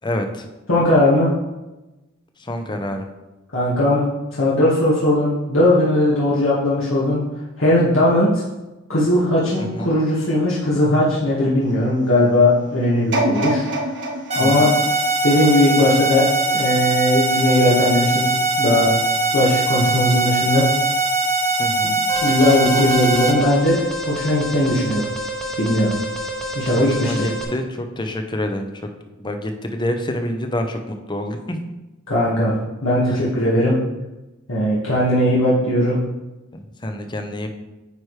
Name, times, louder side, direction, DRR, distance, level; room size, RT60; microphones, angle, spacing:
voice 1, 0.0-0.5 2.4-3.1 9.6-9.9 14.4-14.7 21.6-22.0 26.7-28.7 29.2-31.6 33.1-33.2 36.5-37.5, left 1 dB, 20° left, 6 dB, 0.7 m, -27 dB
voice 2, 0.7-1.3 3.5-4.0 4.4-7.2 7.6-8.4 8.9-13.6 14.3-14.7 15.2-16.2 16.5-18.3 18.6-18.9 19.3-20.7 21.8-21.9 22.2-23.8 24.0-25.0 25.6-25.9 26.5-27.2 32.1-32.5 32.8-33.8 34.5-36.0, left 1 dB, 80° left, -8 dB, 1.7 m, -18 dB
sound 1, 13.1-16.2 16.7-16.8, right 1 dB, 60° right, 1.3 m, -26 dB
sound 2, 14.3-23.3, right 2 dB, 35° right, 1.1 m, -21 dB
Alarm, 22.1-27.4, equal, ahead, 0.9 m, -29 dB
9.2 x 4.6 x 3.3 m, 1.0 s
head